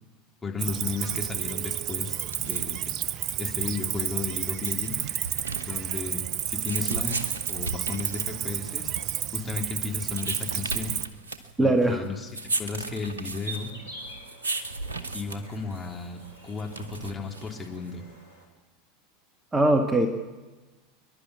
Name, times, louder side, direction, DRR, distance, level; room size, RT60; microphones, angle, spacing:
voice 1, 0.4-2.2 2.4-2.9 3.4-5.0 5.6-7.2 7.5-8.9 9.3-10.9 11.6-12.3 12.6-13.7 15.1-18.0, left 4 dB, 15° left, 1 dB, 3.6 m, -34 dB
Cricket, 0.6-11.1, right 11 dB, 45° right, 0.8 m, -31 dB
sound 1, 2.1-18.0, right 3 dB, 80° right, 1.2 m, -37 dB
voice 2, 11.6-12.0 19.5-20.1, right 1 dB, 15° right, 5 dB, 1.8 m, -21 dB
sound 2, 13.4-18.4, right 1 dB, 90° left, 5.1 m, -46 dB
28.0 x 11.5 x 8.4 m, 1.2 s
figure-of-eight pair, 80°, 0 cm